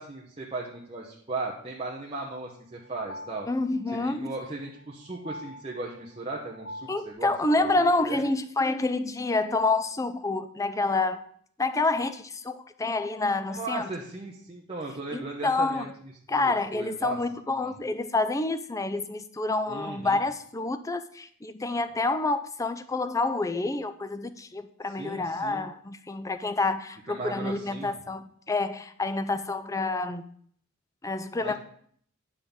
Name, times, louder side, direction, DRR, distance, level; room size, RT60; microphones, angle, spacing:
voice 1, 0.0-3.5 4.0-7.3 7.6-8.2 13.5-15.9 16.3-17.2 17.6-17.7 19.7-20.2 25.0-25.7 27.1-27.9 31.4-31.6, right 3 dB, 25° right, -3 dB, 0.9 m, -37 dB
sound 1, 1.8-7.1, equal, 65° left, 2.3 m, -45 dB
voice 2, 3.5-4.4 6.9-11.2 11.6-13.9 15.1-15.9 16.3-30.3 31.0-31.6, left 3 dB, 15° left, 11 dB, 0.4 m, -28 dB
9.9 x 3.8 x 7.1 m, 0.62 s
head